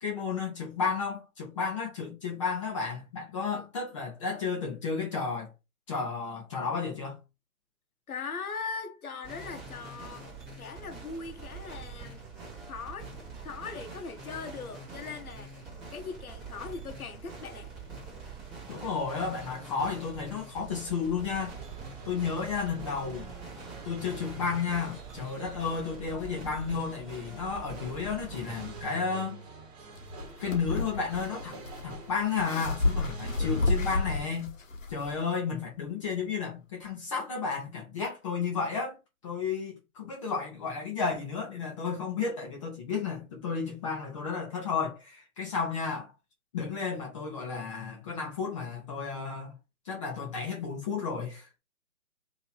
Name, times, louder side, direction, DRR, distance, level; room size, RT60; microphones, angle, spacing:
voice 1, 0.0-5.5 5.9-7.2 18.7-21.6 22.0-23.3 23.8-29.4 30.4-34.5 34.9-39.0 39.2-46.1 46.5-49.5 49.9-51.5, left 5 dB, 20° left, 0.8 m, -32 dB
voice 2, 8.1-10.2 10.6-12.2 12.7-13.1 13.4-17.7, left 5 dB, 80° left, 0.9 m, -40 dB
sound 1, 9.2-28.8, right 4 dB, 10° right, 1.0 m, -45 dB
sound 2, 21.3-34.3, right 4 dB, 30° right, 1.3 m, -47 dB
sound 3, 30.0-35.1, left 2 dB, 60° left, 1.2 m, -31 dB
3.0 x 2.9 x 3.8 m
figure-of-eight pair, 145°, 43 cm